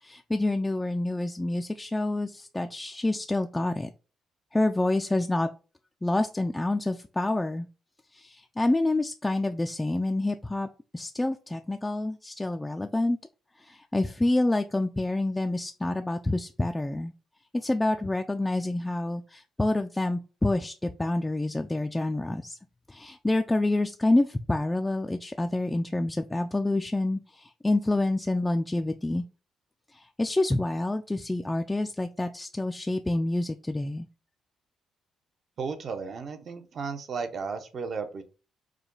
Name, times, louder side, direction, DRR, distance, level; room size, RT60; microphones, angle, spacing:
voice 1, 0.0-3.9 4.5-5.5 6.0-7.7 8.1-10.7 10.9-13.2 13.6-17.1 17.5-22.6 22.9-29.2 29.9-34.1, left 2 dB, 15° left, 5 dB, 0.3 m, -27 dB
voice 2, 35.6-38.2, right 5 dB, 55° right, 7 dB, 0.8 m, -34 dB
4.9 x 2.2 x 3.8 m, 0.34 s
cardioid pair, 90°, 0 cm